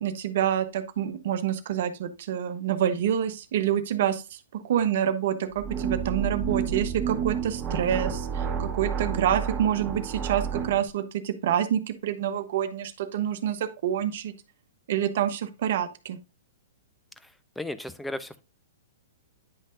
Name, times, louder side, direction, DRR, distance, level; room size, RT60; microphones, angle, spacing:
voice 1, 0.0-4.2 4.5-14.3 14.9-16.2, right 10 dB, 60° right, 10 dB, 1.0 m, -27 dB
sound 1, 5.6-10.8, right 7 dB, 20° right, 1.7 m, -30 dB
voice 2, 17.6-18.4, left 1 dB, 5° left, 12 dB, 0.7 m, -34 dB
9.9 x 5.4 x 2.6 m, 0.29 s
hypercardioid pair, 115°, 0 cm